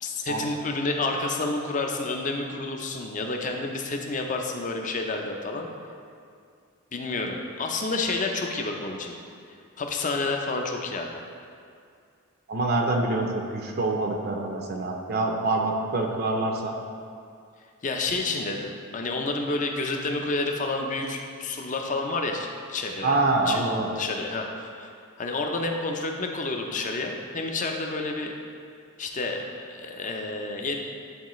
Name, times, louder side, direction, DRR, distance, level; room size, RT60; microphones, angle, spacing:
voice 1, 0.0-5.7 6.9-9.1 9.8-11.1 17.8-23.2 23.5-23.6 23.9-24.9 25.2-28.3 29.0-30.8, left 3 dB, 35° left, 3 dB, 0.6 m, -29 dB
voice 2, 12.5-16.8 23.0-23.9, right 2 dB, 45° right, 1 dB, 0.5 m, -25 dB
10.5 x 4.0 x 3.1 m, 2.3 s
head